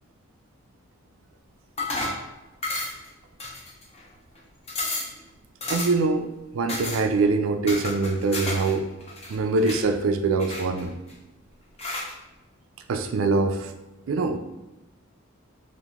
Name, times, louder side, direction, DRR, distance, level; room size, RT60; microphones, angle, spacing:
sound 1, 1.8-2.2 2.6-3.1 3.4-4.0 4.4-4.5 4.7-5.2 5.6-6.1 6.7-7.0 7.7-8.7 9.0-9.8 10.4-11.1 11.8-12.1, left 2 dB, 30° left, 0.6 m, -31 dB
voice 1, 5.7-6.3 6.5-8.9 9.3-10.9 12.9-13.7 14.1-14.4, right 3 dB, 80° right, 7 dB, 0.4 m, -23 dB
3.0 x 2.6 x 3.5 m, 1.0 s
head